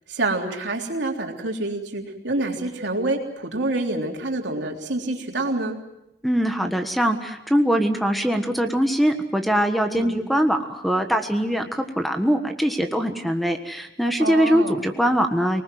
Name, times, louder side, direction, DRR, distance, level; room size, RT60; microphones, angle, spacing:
voice 1, 0.1-5.8 9.9-10.2 14.2-14.8, right 2 dB, 85° right, 2 dB, 3.5 m, -27 dB
voice 2, 6.2-15.6, equal, ahead, 6 dB, 1.4 m, -22 dB
25.5 x 19.5 x 7.7 m, 0.85 s
head